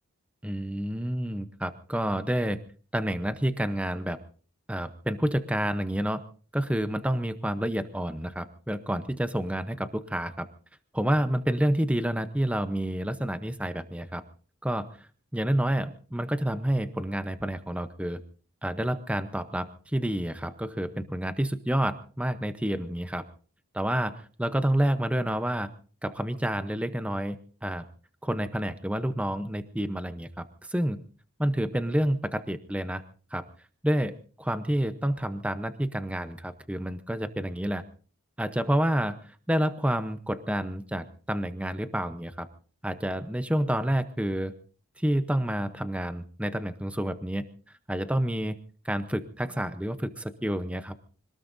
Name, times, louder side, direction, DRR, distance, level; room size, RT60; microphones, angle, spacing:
voice 1, 0.4-2.6 2.9-4.2 4.7-6.2 6.5-10.5 10.9-14.2 14.6-15.1 15.3-18.2 18.6-23.2 23.7-25.7 26.0-27.9 28.2-31.0 31.4-33.0 33.3-33.4 33.8-37.8 38.4-42.5 42.8-44.5 45.0-47.4 47.9-48.6 48.8-51.0, right 1 dB, 5° right, 10 dB, 0.8 m, -29 dB
25.5 x 19.0 x 2.7 m, 0.41 s
head